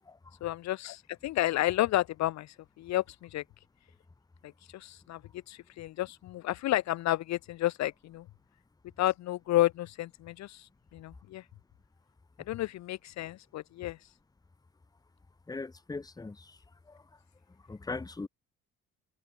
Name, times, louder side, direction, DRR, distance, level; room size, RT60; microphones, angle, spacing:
voice 1, 0.4-3.4 4.7-5.2 5.5-8.2 9.0-10.7 10.9-11.4 12.5-14.0, left 15 dB, 65° left, 0.5 m, -31 dB
voice 2, 15.5-16.6 16.9-17.0 17.7-18.3, left 3 dB, 15° left, 0.7 m, -39 dB
cardioid pair, 90°, 30 cm